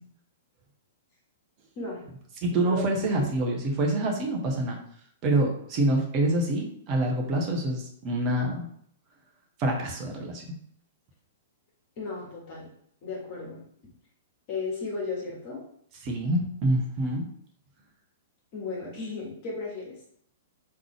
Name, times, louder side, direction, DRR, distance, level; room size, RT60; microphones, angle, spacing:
voice 1, 1.8-2.1 2.5-2.8 3.2-3.3 12.0-12.7 13.0-13.6 14.5-15.6 18.5-19.9, left 3 dB, 40° left, -3 dB, 1.7 m, -35 dB
voice 2, 2.4-4.8 5.2-8.7 9.6-10.4 16.0-17.2, right 1 dB, 35° right, 1 dB, 0.9 m, -26 dB
3.8 x 3.3 x 3.2 m, 0.65 s
figure-of-eight pair, 105°, 0 cm